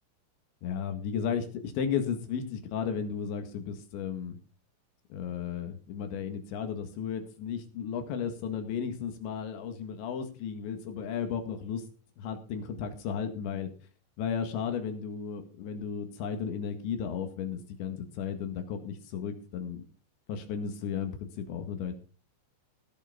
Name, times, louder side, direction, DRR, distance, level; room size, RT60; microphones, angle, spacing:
voice 1, 0.6-4.4 5.1-11.8 12.2-13.7 14.2-19.9 20.3-21.9, left 7 dB, 75° left, 6 dB, 4.1 m, -34 dB
17.0 x 7.0 x 5.1 m, 0.36 s
omnidirectional pair, 5.4 m